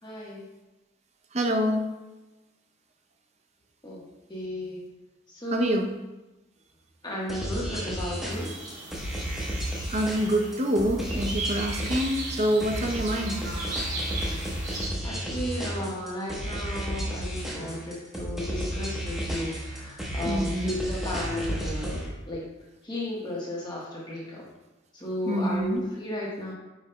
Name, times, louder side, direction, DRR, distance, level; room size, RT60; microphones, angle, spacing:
voice 1, 0.0-0.4 3.8-4.8 5.3-5.9 7.0-8.6 15.0-22.4 22.8-24.5 24.9-26.5, left 1 dB, 20° left, -5 dB, 1.2 m, -34 dB
voice 2, 1.3-1.8 5.5-5.9 9.9-13.5 20.2-20.7 25.3-25.8, equal, 35° right, 4 dB, 0.6 m, -26 dB
sound 1, 7.3-22.1, equal, ahead, 1.0 m, -33 dB
sound 2, 8.3-14.9, right 2 dB, 80° right, 1.8 m, -37 dB
8.9 x 5.0 x 2.2 m, 1.1 s
head